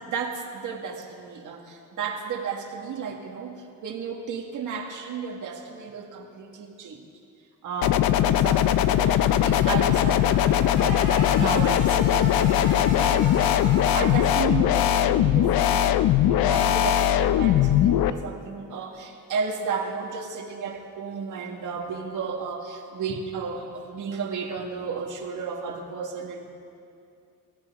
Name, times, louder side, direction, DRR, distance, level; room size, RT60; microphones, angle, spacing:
voice 1, 0.1-7.0 7.6-13.3 13.9-15.7 16.2-26.5, right 5 dB, 60° right, 2 dB, 1.7 m, -33 dB
sound 1, 7.8-18.1, left 11 dB, 85° left, 0.6 m, -20 dB
sound 2, 8.3-14.4, left 3 dB, 45° left, 4.5 m, -35 dB
23.0 x 16.5 x 3.6 m, 2.5 s
cardioid pair, 175°, 35 cm